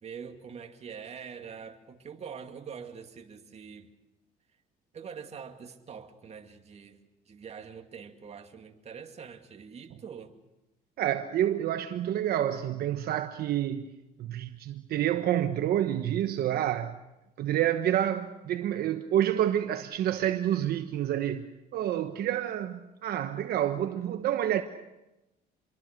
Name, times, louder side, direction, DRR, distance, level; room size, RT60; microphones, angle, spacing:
voice 1, 0.0-3.9 4.9-7.0 7.3-10.3, right 6 dB, 40° right, 2.3 m, -44 dB
voice 2, 11.0-13.9 14.2-17.0 17.4-21.4 21.7-24.6, right 11 dB, 65° right, 1.2 m, -28 dB
26.5 x 22.5 x 6.6 m
cardioid pair, 110°, 17 cm